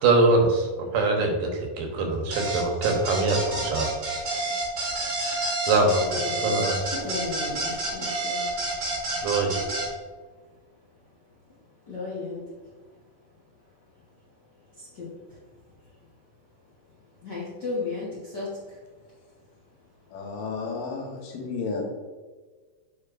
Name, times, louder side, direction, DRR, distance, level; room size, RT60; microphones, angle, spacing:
voice 1, 0.0-4.0 5.6-6.0 6.4-6.7 9.2-9.6, right 3 dB, 75° right, 1 dB, 2.6 m, -23 dB
sound 1, 2.3-9.9, right 2 dB, 35° right, 1.5 m, -29 dB
voice 2, 5.0-5.7 6.0-8.6 11.8-12.4 13.9-14.0 14.7-15.4 15.8-15.9 17.1-18.8, left 3 dB, 60° left, -7 dB, 1.0 m, -35 dB
voice 3, 20.1-21.8, left 4 dB, 85° left, 0 dB, 2.8 m, -32 dB
7.9 x 5.2 x 2.5 m, 1.4 s
omnidirectional pair, 3.9 m